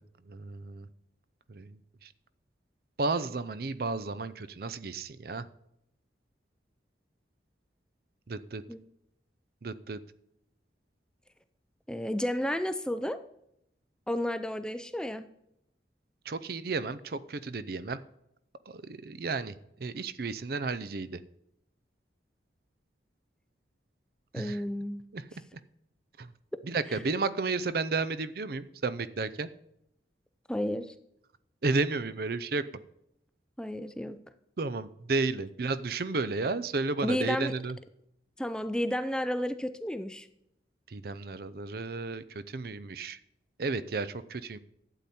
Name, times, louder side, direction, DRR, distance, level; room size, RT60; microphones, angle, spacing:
voice 1, 0.3-0.9 1.5-2.1 3.0-5.5 8.3-8.6 9.6-10.0 16.3-18.0 18.7-19.5 19.8-21.2 24.3-24.6 25.1-25.3 26.2-26.3 26.6-29.5 31.6-32.7 34.6-37.8 40.9-43.2 43.6-44.6, right 3 dB, 55° right, 15 dB, 0.5 m, -32 dB
voice 2, 11.9-13.2 14.1-15.3 24.3-25.0 30.5-30.9 33.6-34.2 37.0-37.5 38.4-40.3, left 1 dB, 5° left, 11 dB, 0.4 m, -32 dB
12.0 x 8.4 x 4.3 m, 0.77 s
head